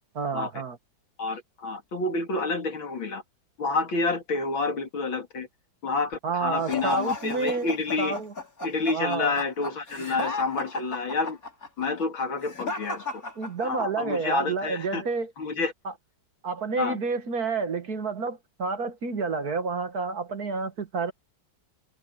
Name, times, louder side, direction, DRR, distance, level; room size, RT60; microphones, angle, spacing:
voice 1, 0.2-0.8 6.2-7.7 8.0-8.3 8.9-9.3 13.4-15.3 15.9-16.0 16.4-21.1, right 4 dB, 50° right, 1.9 m, -29 dB
voice 2, 1.2-3.2 3.6-5.5 5.8-8.2 8.6-11.4 11.8-13.2 13.6-15.0 15.4-15.7 16.8-17.0, left 3 dB, 75° left, 3.4 m, -29 dB
sound 1, 6.6-14.0, left 2 dB, 45° left, 5.3 m, -35 dB
omnidirectional pair, 2.2 m